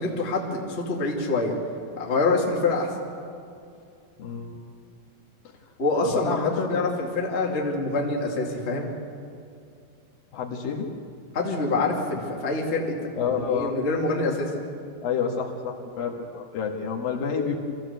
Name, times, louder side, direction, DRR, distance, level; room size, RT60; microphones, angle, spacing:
voice 1, 0.0-1.6 2.0-2.9 5.8-8.9 11.3-14.5, left 3 dB, 20° left, -1 dB, 2.1 m, -26 dB
voice 2, 4.2-4.6 6.0-6.8 10.3-10.9 13.2-13.7 15.0-17.6, left 6 dB, 70° left, 0 dB, 3.5 m, -28 dB
24.5 x 15.0 x 8.1 m, 2.5 s
omnidirectional pair, 4.3 m